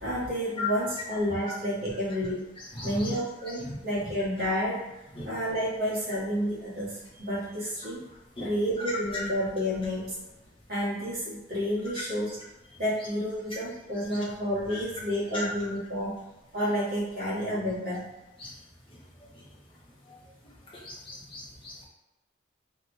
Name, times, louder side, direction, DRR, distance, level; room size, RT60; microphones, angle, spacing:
voice 1, 0.0-2.5 2.8-4.9 5.2-8.0 8.4-10.2 10.7-12.4 12.8-16.2 16.5-18.1, equal, 50° right, -8 dB, 1.0 m, -30 dB
voice 2, 20.8-21.9, left 4 dB, 25° left, -4 dB, 0.6 m, -36 dB
2.6 x 2.0 x 2.9 m, 0.98 s
head